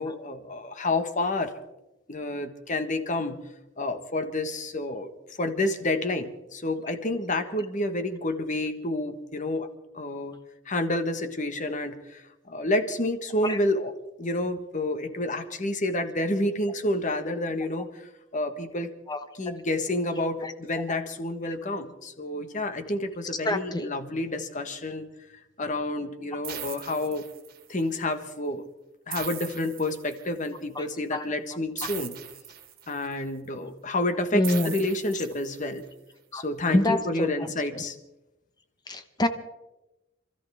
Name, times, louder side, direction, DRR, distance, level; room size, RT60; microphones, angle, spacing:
voice 1, 0.0-1.5 2.1-3.4 3.8-5.1 5.4-10.4 10.7-13.9 14.2-18.0 18.3-18.9 19.3-25.1 25.6-27.3 27.7-28.6 29.1-32.1 32.9-35.8 36.3-38.0, left 1 dB, 40° left, 8 dB, 1.5 m, -29 dB
voice 2, 23.4-23.9 30.8-30.9 31.1-31.3 34.3-34.7 36.3-36.4 36.7-37.3 38.9-39.3, left 1 dB, 20° left, 8 dB, 1.0 m, -25 dB
sound 1, 26.4-27.8 29.1-30.5 31.8-33.1 34.4-35.8, right 10 dB, 50° right, 1.9 m, -40 dB
27.5 x 14.0 x 3.6 m, 0.96 s
head